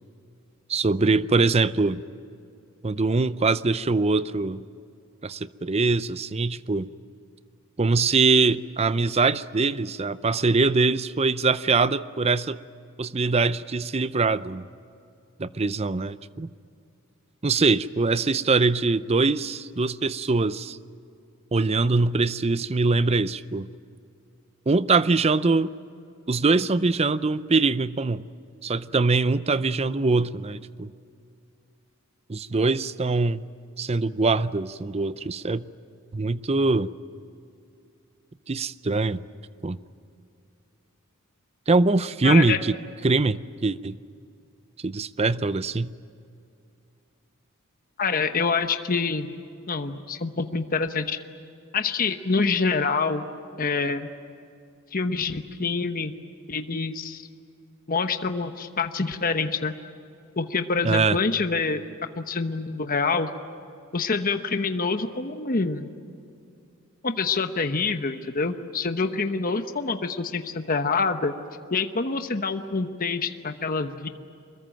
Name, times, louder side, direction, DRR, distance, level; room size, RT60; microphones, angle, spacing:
voice 1, 0.7-2.0 2.8-4.6 5.2-6.9 7.8-12.6 13.0-14.6 15.4-16.5 17.4-20.8 21.5-23.7 24.7-25.7 26.3-28.2 28.6-30.9 32.3-33.4 33.8-35.7 36.1-36.9 38.5-39.2 39.6-39.8 41.7-42.8 43.0-44.0 44.8-45.9 60.8-61.2, right 3 dB, 30° right, 15 dB, 0.5 m, -23 dB
voice 2, 42.2-42.6 48.0-49.3 49.7-51.2 51.7-53.2 53.6-54.1 54.9-56.1 56.5-57.2 57.9-59.7 60.4-61.8 62.2-63.3 63.9-65.9 67.0-71.3 71.7-74.1, left 4 dB, 40° left, 8 dB, 1.0 m, -26 dB
25.5 x 21.5 x 9.1 m, 2.5 s
head